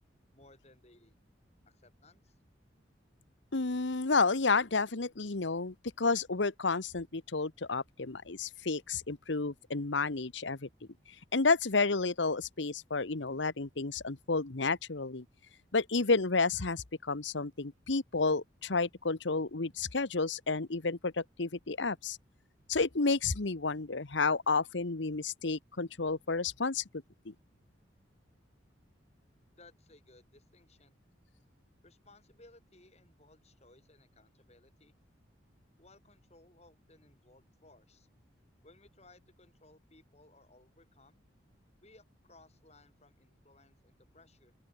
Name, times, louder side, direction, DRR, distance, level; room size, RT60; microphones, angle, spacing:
voice 1, 0.3-1.1 1.6-2.4 29.6-31.0 31.8-34.9 35.8-38.1 38.6-41.2 41.8-44.5, left 2 dB, 35° left, 6.7 m, -61 dB
voice 2, 3.5-10.7 11.3-15.2 15.7-22.2 22.7-26.8 27.2-27.3, left 4 dB, 75° left, 1.2 m, -31 dB
open air
head